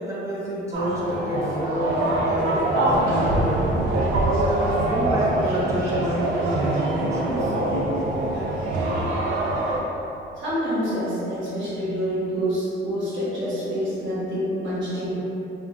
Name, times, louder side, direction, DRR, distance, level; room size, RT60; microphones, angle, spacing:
voice 1, 0.0-3.8 4.1-7.5, right 1 dB, 15° right, -8 dB, 0.5 m, -29 dB
sound 1, 0.7-9.8, right 1 dB, 85° right, 0.5 m, -24 dB
voice 2, 10.4-15.1, equal, 70° right, -10 dB, 0.9 m, -27 dB
2.5 x 2.4 x 2.9 m, 2.8 s
cardioid pair, 90°, 20 cm